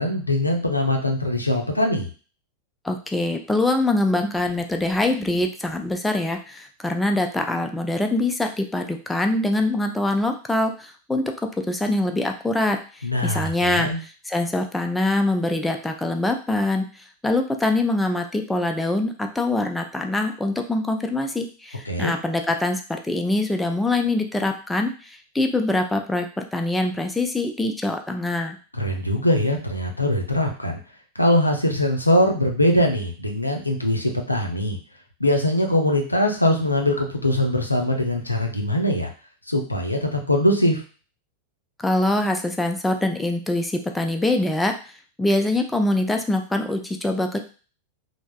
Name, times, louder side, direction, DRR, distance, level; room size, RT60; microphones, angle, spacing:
voice 1, 0.0-2.1 13.0-14.0 21.8-22.1 28.8-30.8 31.2-34.8 35.2-39.1 39.5-40.8, left 1 dB, 85° left, 2 dB, 0.5 m, -22 dB
voice 2, 2.8-11.2 11.6-13.9 14.3-28.6 41.8-44.7 45.2-47.4, left 2 dB, 5° left, 4 dB, 0.3 m, -24 dB
3.3 x 2.0 x 2.3 m, 0.37 s
figure-of-eight pair, 90°, 0 cm